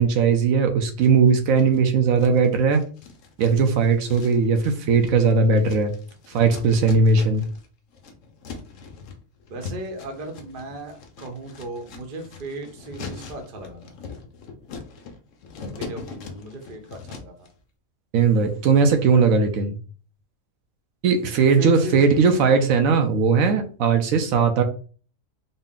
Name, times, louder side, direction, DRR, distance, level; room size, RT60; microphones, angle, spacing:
voice 1, 0.0-2.8 3.4-5.9 6.3-7.4 18.1-19.7 21.0-24.6, right 5 dB, 80° right, 6 dB, 1.0 m, -18 dB
sound 1, 1.0-1.8 2.2-7.7 7.9-17.5, left 4 dB, 70° left, 1.0 m, -41 dB
voice 2, 9.5-13.9 15.7-17.5 21.3-22.2, right 1 dB, 45° right, 4 dB, 0.9 m, -36 dB
4.0 x 2.1 x 3.6 m, 0.40 s
omnidirectional pair, 1.4 m